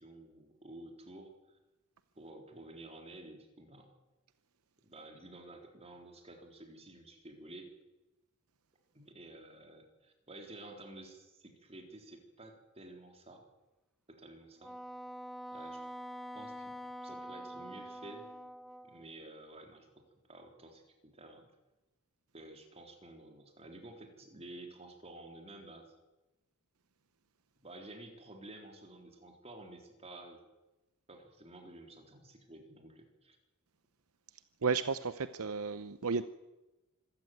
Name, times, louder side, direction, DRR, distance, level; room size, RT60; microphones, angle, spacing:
voice 1, 0.0-1.6 2.2-3.9 4.8-7.7 8.9-13.4 14.1-14.7 15.5-15.8 16.3-16.8 17.0-18.3 18.8-21.5 22.3-25.9 27.6-30.4 31.1-33.4, right 2 dB, 30° right, 3 dB, 3.9 m, -52 dB
Wind instrument woodwind instrument, 14.6-19.1, equal, ahead, 0.7 m, -45 dB
voice 2, 34.6-36.2, right 5 dB, 70° right, 13 dB, 0.7 m, -33 dB
25.5 x 14.0 x 9.3 m, 1.0 s
head